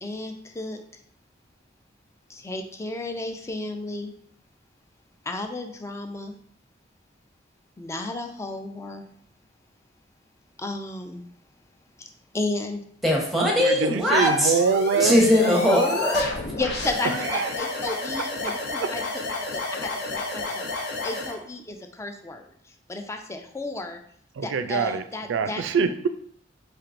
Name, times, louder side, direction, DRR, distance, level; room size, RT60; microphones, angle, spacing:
voice 1, 0.0-0.8 2.3-4.1 5.3-6.3 7.8-9.0 10.6-11.2 12.3-12.8 15.7-15.8 16.6-19.1 19.5-20.6 21.0-22.5 22.9-24.0 24.4-25.6, left 2 dB, 15° left, 5 dB, 0.4 m, -33 dB
voice 2, 13.0-14.6 14.9-16.2, equal, ahead, -2 dB, 0.9 m, -20 dB
voice 3, 13.6-15.2 17.3-17.5 18.4-18.5 24.4-25.0 25.3-26.1, right 5 dB, 80° right, 10 dB, 0.3 m, -24 dB
sound 1, 14.2-21.4, left 3 dB, 60° left, 0.7 m, -31 dB
4.5 x 3.3 x 2.5 m, 0.63 s
head